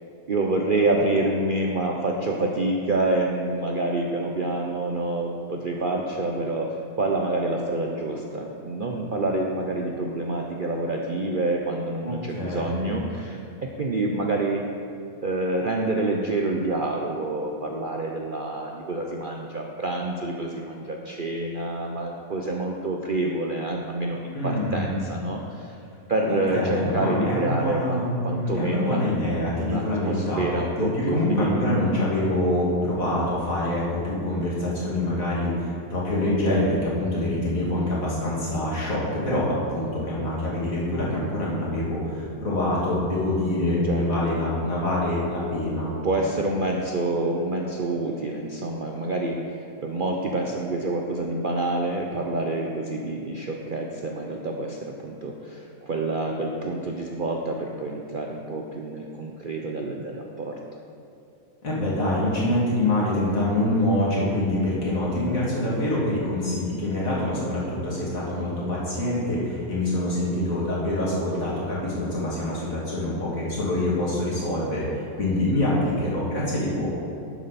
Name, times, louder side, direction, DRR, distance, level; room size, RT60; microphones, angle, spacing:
voice 1, 0.3-6.7 7.0-14.6 15.2-25.8 26.1-29.0 29.6-31.7 43.9-44.4 46.0-60.5, right 2 dB, 50° right, 0 dB, 0.7 m, -27 dB
voice 2, 12.0-13.0 24.3-25.0 26.3-30.4 30.8-45.9 61.6-76.9, left 1 dB, 60° left, -6 dB, 2.9 m, -25 dB
12.0 x 7.5 x 4.1 m, 2.7 s
omnidirectional pair, 1.6 m